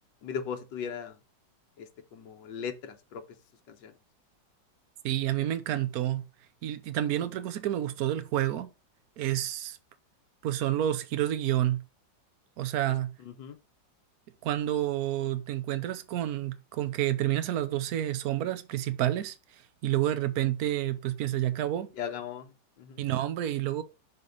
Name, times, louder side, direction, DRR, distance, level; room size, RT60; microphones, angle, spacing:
voice 1, 0.2-1.2 1.8-3.2 3.7-3.9 13.2-13.6 22.0-22.5 22.8-23.0, left 7 dB, 75° left, 1.6 m, -38 dB
voice 2, 5.0-6.2 6.6-8.7 9.2-9.8 10.4-11.8 12.6-13.1 14.4-19.4 19.8-21.9 23.0-23.8, right 12 dB, 65° right, 1.1 m, -29 dB
6.7 x 3.5 x 5.2 m
omnidirectional pair, 2.0 m